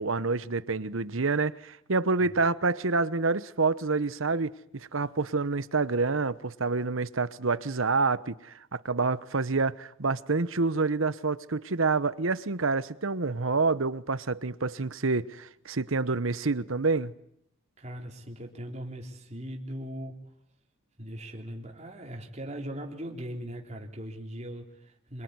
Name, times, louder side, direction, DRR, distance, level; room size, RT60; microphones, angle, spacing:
voice 1, 0.0-17.1, right 3 dB, 70° right, 1.0 m, -28 dB
voice 2, 17.8-20.2 21.0-25.2, equal, 35° right, 3.5 m, -39 dB
26.5 x 23.0 x 9.7 m
head